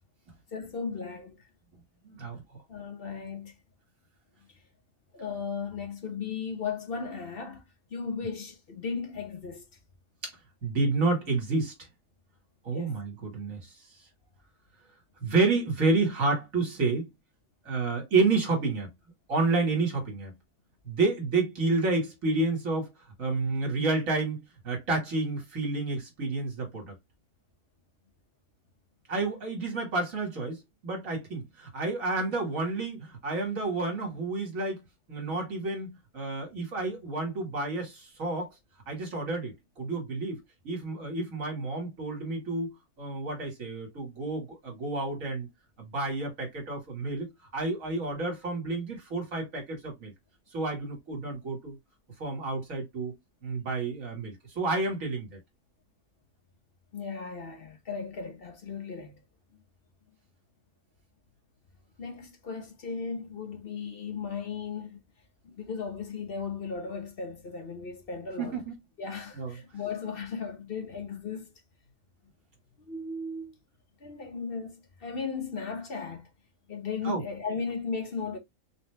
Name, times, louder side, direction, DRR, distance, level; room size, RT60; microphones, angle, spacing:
voice 1, 0.5-1.4 2.7-3.5 5.1-7.6 7.9-9.6 12.7-12.9 56.9-59.2 59.5-59.6 62.0-65.0 65.4-68.6 69.0-71.5 72.9-73.6 74.0-76.3 76.7-78.4, left 5 dB, 45° left, 1.0 m, -36 dB
voice 2, 2.0-2.4 10.2-10.3 10.6-11.7 12.6-13.6 15.2-17.1 17.7-18.9 19.3-20.3 20.8-22.9 23.2-26.9 29.1-34.8 35.1-38.5 38.9-42.7 43.0-45.5 45.8-50.1 50.5-51.8 52.2-55.4 68.4-68.7 69.3-69.5 77.0-77.2, right 3 dB, 65° right, 2.3 m, -30 dB
4.1 x 2.9 x 3.3 m
omnidirectional pair, 1.5 m